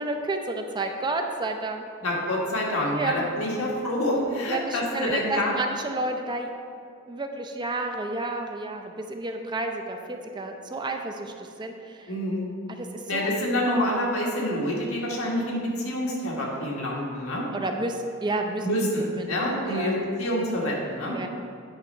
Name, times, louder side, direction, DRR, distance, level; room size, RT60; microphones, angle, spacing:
voice 1, 0.0-1.8 2.9-3.3 4.4-6.5 7.1-12.1 12.7-13.4 13.7-14.1 17.5-18.6 19.2-19.4 19.7-19.9 21.1-21.3, right 2 dB, 20° right, 4 dB, 0.5 m, -31 dB
voice 2, 2.0-5.5 12.1-12.4 13.1-17.4 18.6-21.2, left 1 dB, 85° left, -3 dB, 1.7 m, -27 dB
8.8 x 4.2 x 5.5 m, 2.4 s
head